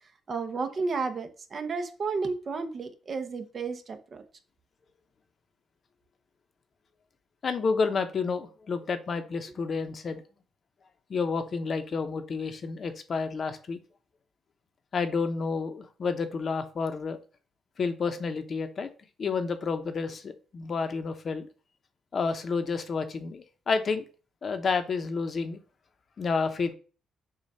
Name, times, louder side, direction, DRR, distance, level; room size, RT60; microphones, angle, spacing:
voice 1, 0.3-4.2, right 4 dB, 45° right, 7 dB, 0.9 m, -32 dB
voice 2, 7.4-10.2 11.1-13.8 14.9-17.2 17.8-18.9 19.2-21.5 22.1-24.0 24.4-25.6 26.2-26.7, left 4 dB, 45° left, 9 dB, 0.8 m, -30 dB
7.2 x 2.4 x 5.5 m, 0.37 s
cardioid pair, 90°, 0 cm